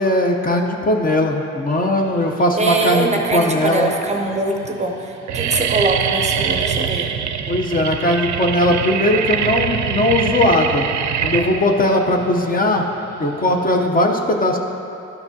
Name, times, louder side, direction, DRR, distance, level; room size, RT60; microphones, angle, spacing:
voice 1, 0.0-3.9 7.5-10.8 11.2-12.9 13.2-14.6, left 1 dB, 30° left, 2 dB, 0.6 m, -18 dB
voice 2, 2.6-7.1, right 2 dB, 25° right, 2 dB, 0.6 m, -22 dB
sound 1, 2.7-3.3 3.9-4.0 4.3-4.7 4.9-13.9, right 8 dB, 70° right, 0.5 m, -23 dB
11.5 x 5.9 x 2.7 m, 2.8 s
cardioid pair, 90°, 30 cm